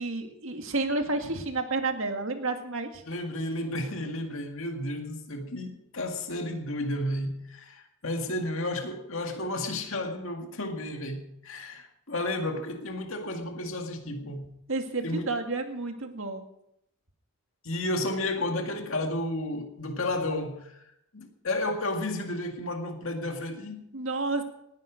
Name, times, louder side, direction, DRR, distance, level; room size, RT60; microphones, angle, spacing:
voice 1, 0.0-3.0 14.7-16.4 23.9-24.4, right 3 dB, 65° right, 2.0 m, -30 dB
voice 2, 3.1-14.5 15.0-15.3 17.6-20.8 21.1-23.8, left 1 dB, 65° left, 2.0 m, -32 dB
19.5 x 11.0 x 5.2 m
head